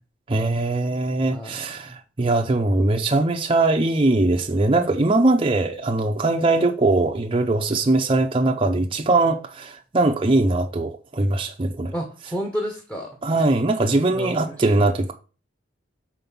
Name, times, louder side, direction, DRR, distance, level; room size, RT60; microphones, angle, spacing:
voice 1, 0.3-11.9 13.2-15.1, right 2 dB, 30° right, 0.6 m, -21 dB
voice 2, 1.3-1.9 11.9-13.1 14.1-14.9, equal, 10° left, 1.1 m, -31 dB
5.3 x 4.5 x 6.0 m
head